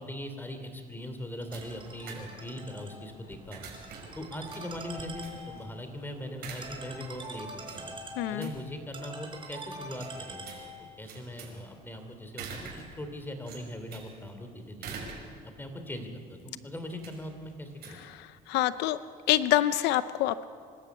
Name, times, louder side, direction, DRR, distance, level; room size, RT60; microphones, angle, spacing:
voice 1, 0.0-3.6 4.1-7.9 8.3-10.7 11.0-15.0 15.4-18.0, left 1 dB, 10° left, 6 dB, 3.1 m, -40 dB
sound 1, 0.8-18.8, right 5 dB, 70° right, 5.6 m, -48 dB
Ringtone, 1.4-11.0, right 1 dB, 30° right, 4.7 m, -45 dB
voice 2, 8.2-8.5 18.0-19.0 19.3-20.5, left 14 dB, 90° left, 14 dB, 0.6 m, -27 dB
25.5 x 13.0 x 8.3 m, 2.2 s
cardioid pair, 110°, 17 cm